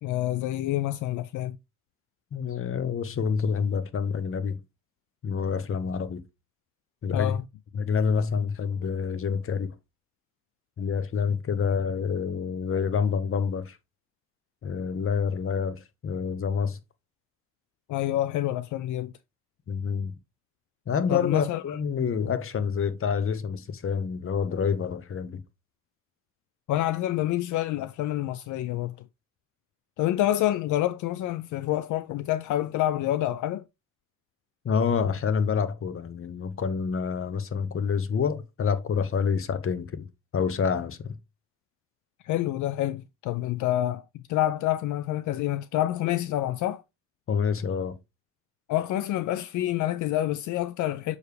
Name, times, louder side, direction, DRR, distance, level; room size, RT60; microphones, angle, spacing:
voice 1, 0.0-1.6 7.1-7.4 17.9-19.1 21.1-21.8 26.7-28.9 30.0-33.6 42.2-46.8 48.7-51.2, left 14 dB, 75° left, 0.5 m, -27 dB
voice 2, 2.3-4.6 5.2-6.2 7.0-7.4 7.7-9.7 10.8-13.8 14.6-16.8 19.7-20.1 20.9-25.4 34.6-40.1 40.3-41.1 47.3-48.0, left 6 dB, 45° left, 1.0 m, -27 dB
6.5 x 4.8 x 3.3 m
cardioid pair, 90°, 30 cm